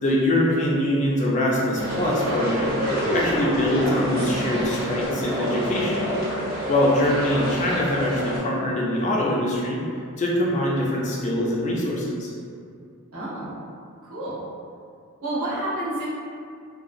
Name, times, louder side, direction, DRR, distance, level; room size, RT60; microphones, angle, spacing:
voice 1, 0.0-6.1 6.7-9.8 10.2-12.3, left 1 dB, 30° left, -4 dB, 0.3 m, -23 dB
sound 1, 1.7-8.4, equal, 40° right, 0.8 m, -27 dB
voice 2, 13.1-13.5 14.0-14.4 15.2-16.0, right 1 dB, 70° right, -10 dB, 1.0 m, -29 dB
2.7 x 2.3 x 2.5 m, 2.3 s
head